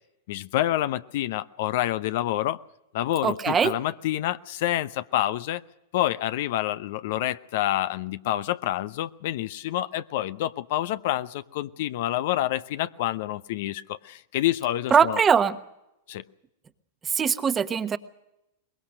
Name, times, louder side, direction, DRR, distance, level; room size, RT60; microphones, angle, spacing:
voice 1, 0.3-2.6 2.9-5.6 5.9-15.2 16.1-16.2, left 14 dB, 60° left, 13 dB, 0.8 m, -28 dB
voice 2, 3.2-3.7 14.9-15.6 17.0-18.0, right 7 dB, 20° right, 10 dB, 1.3 m, -21 dB
23.5 x 21.0 x 6.5 m, 0.88 s
hypercardioid pair, 105°, 0 cm